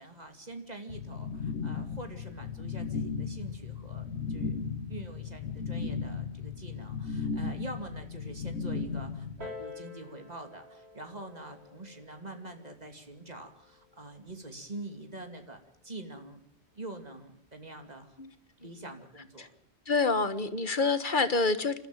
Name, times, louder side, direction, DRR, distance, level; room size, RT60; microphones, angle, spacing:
voice 1, 0.0-4.6 4.9-16.4 16.7-18.2 18.6-19.5, right 2 dB, 35° right, 6 dB, 2.7 m, -45 dB
sound 1, 0.9-9.5, left 5 dB, 85° left, 1.9 m, -36 dB
Piano, 9.4-14.6 15.4-15.5, left 3 dB, 60° right, 3.7 m, -49 dB
voice 2, 19.9-21.9, left 3 dB, 45° left, 12 dB, 1.5 m, -27 dB
27.0 x 13.5 x 9.0 m, 0.66 s
omnidirectional pair, 1.2 m